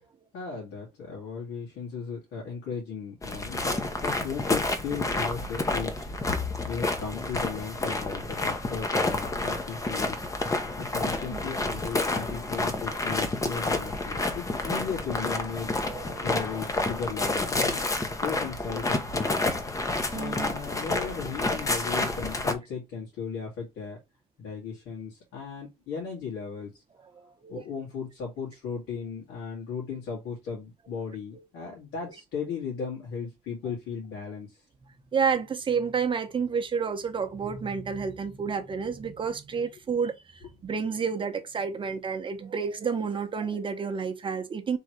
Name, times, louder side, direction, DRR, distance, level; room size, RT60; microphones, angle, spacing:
voice 1, 0.3-6.1 6.7-10.3 10.8-15.8 16.2-17.9 18.2-19.4 20.1-24.0 24.4-26.8 27.5-34.6, left 6 dB, 85° left, 2.1 m, -36 dB
sound 1, 3.2-22.5, left 2 dB, 20° left, 0.8 m, -29 dB
voice 2, 15.9-16.4 20.1-20.5 27.4-27.6 35.1-44.8, right 6 dB, 30° right, 1.0 m, -30 dB
3.8 x 3.0 x 4.5 m
cardioid pair, 110°, 17 cm